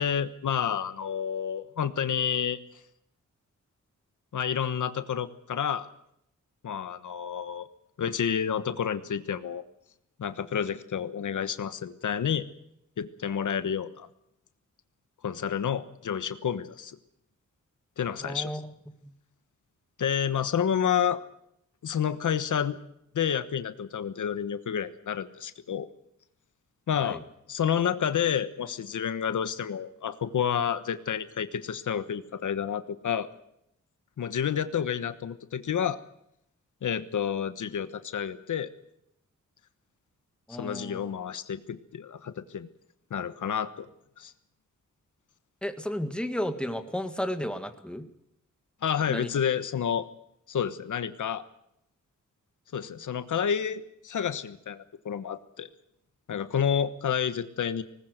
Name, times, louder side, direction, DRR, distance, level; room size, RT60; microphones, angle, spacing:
voice 1, 0.0-2.6 4.3-5.9 6.6-7.6 8.0-9.6 10.2-12.5 13.0-14.1 15.2-17.0 18.0-18.5 20.0-21.2 21.8-22.8 23.1-25.9 26.9-27.2 27.5-33.3 34.2-36.0 36.8-38.7 40.6-42.7 43.1-43.9 44.2-44.3 48.8-50.1 50.5-51.4 52.7-55.7 56.3-57.8, left 8 dB, 80° left, 13 dB, 1.2 m, -29 dB
voice 2, 18.2-18.7 19.0-19.1 27.0-27.2 40.5-41.0 45.6-48.0 49.1-49.3, equal, 5° left, 8 dB, 1.8 m, -33 dB
20.0 x 19.5 x 7.9 m, 0.78 s
wide cardioid pair, 135°, 30 cm